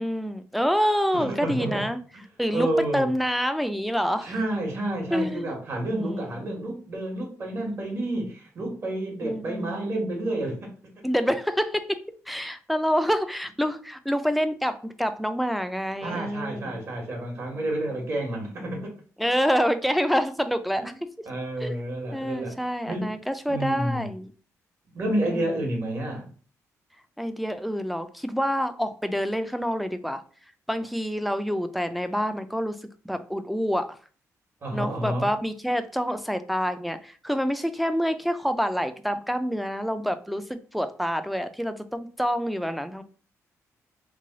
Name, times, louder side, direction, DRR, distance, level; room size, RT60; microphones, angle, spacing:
voice 1, 0.0-2.0 2.4-4.3 5.1-5.5 5.9-6.5 9.2-9.8 11.0-12.0 12.3-16.8 19.2-20.9 21.6-21.7 22.1-24.3 25.3-25.6 27.2-30.2 30.7-32.8 33.0-34.0 34.7-43.0, equal, ahead, 0.3 m, -27 dB
voice 2, 1.1-1.8 2.5-3.1 4.2-10.6 16.0-18.9 20.8-21.0 21.3-22.6 22.9-23.1 23.5-24.1 24.9-26.3 34.6-35.3, right 1 dB, 45° right, 1.3 m, -29 dB
3.1 x 2.2 x 3.8 m
cardioid pair, 105°, 6 cm